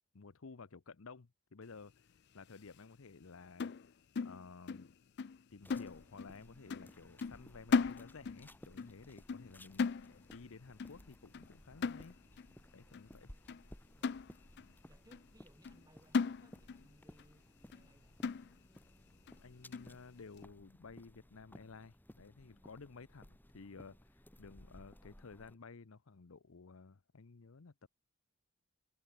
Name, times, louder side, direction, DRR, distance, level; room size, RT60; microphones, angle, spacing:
voice 1, 0.1-3.7 4.2-4.9 5.5-12.2 12.7-13.3 19.4-27.9, left 4 dB, 70° left, 0.7 m, -54 dB
sound 1, 3.6-4.9 5.2-5.4 5.7-6.4 6.7-6.9 7.2-8.5 8.8-9.0 9.3-9.5 9.8-10.5 10.8-11.0 11.3-11.5 11.8-12.5 12.9-13.0 13.5-13.6 14.0-14.7 15.1-15.2 15.6-15.8 16.1-16.9 17.2-17.3 17.7-17.8 18.2-18.8 19.3-19.4 19.7-19.9, left 5 dB, 50° left, 0.4 m, -37 dB
sound 2, 5.6-25.6, equal, 10° left, 1.7 m, -59 dB
voice 2, 12.8-13.1 14.0-14.2 14.8-18.2, right 1 dB, 15° right, 7.6 m, -67 dB
head